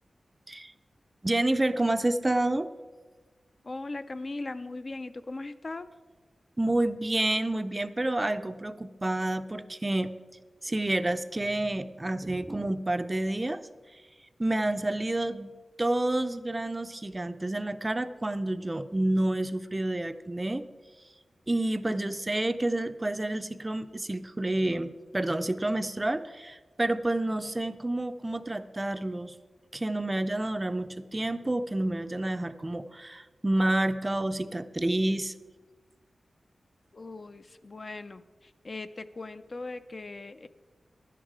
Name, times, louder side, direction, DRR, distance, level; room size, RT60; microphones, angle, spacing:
voice 1, 1.2-2.7 6.6-10.1 10.6-13.6 14.4-15.5 15.8-20.6 21.5-29.3 29.7-35.3, right 1 dB, 20° right, 11 dB, 0.4 m, -29 dB
voice 2, 3.6-5.9 36.9-40.5, left 2 dB, 40° left, 11 dB, 0.4 m, -39 dB
11.0 x 10.0 x 4.8 m, 1.3 s
wide cardioid pair, 130°, 0 cm